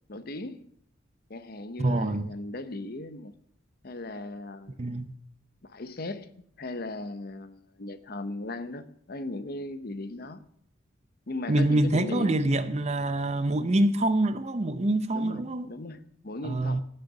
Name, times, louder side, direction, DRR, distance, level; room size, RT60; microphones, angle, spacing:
voice 1, 0.1-0.6 1.3-3.3 3.8-4.8 5.6-6.3 6.6-10.4 11.3-12.6 15.1-16.8, left 2 dB, 45° left, 0.8 m, -37 dB
voice 2, 1.8-2.3 4.8-5.1 11.5-15.7 16.4-16.8, right 1 dB, 30° right, 0.6 m, -25 dB
17.0 x 6.5 x 6.0 m
head